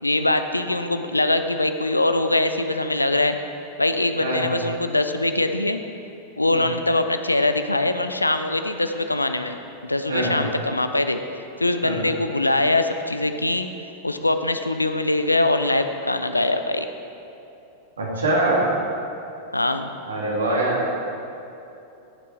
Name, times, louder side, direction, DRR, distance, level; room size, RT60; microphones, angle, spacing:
voice 1, 0.0-3.4 3.8-5.8 6.4-13.7 14.0-16.9 19.5-19.9, left 2 dB, 85° left, 8 dB, 0.5 m, -22 dB
voice 2, 10.1-10.4 11.8-12.0 18.0-18.6 20.1-21.0, right 2 dB, 70° right, -4 dB, 2.6 m, -23 dB
14.5 x 7.5 x 4.8 m, 2.8 s
figure-of-eight pair, 90°, 0 cm